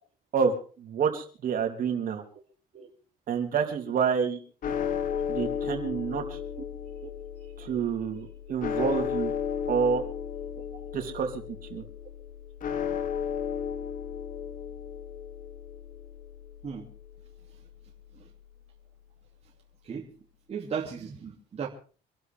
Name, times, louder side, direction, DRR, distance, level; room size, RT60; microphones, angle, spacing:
voice 1, 0.3-2.2 3.3-4.4 5.3-6.4 7.6-9.3 9.7-10.0 10.9-11.8, right 6 dB, 55° right, 4 dB, 3.3 m, -28 dB
sound 1, 4.6-18.9, left 8 dB, 55° left, 1.7 m, -35 dB
voice 2, 20.5-21.7, right 6 dB, 40° right, -1 dB, 2.7 m, -36 dB
26.0 x 12.0 x 3.5 m, 0.38 s
cardioid pair, 110°, 17 cm